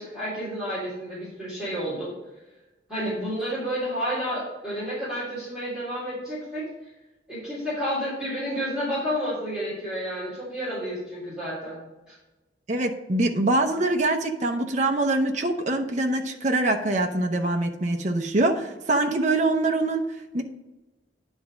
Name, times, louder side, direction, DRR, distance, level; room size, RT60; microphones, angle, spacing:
voice 1, 0.0-2.1 2.9-6.6 7.3-11.8 12.1-12.2, equal, 5° right, -12 dB, 3.2 m, -30 dB
voice 2, 12.7-20.0 20.3-20.4, right 2 dB, 40° right, 3 dB, 0.8 m, -24 dB
10.0 x 3.6 x 6.3 m, 1.0 s
head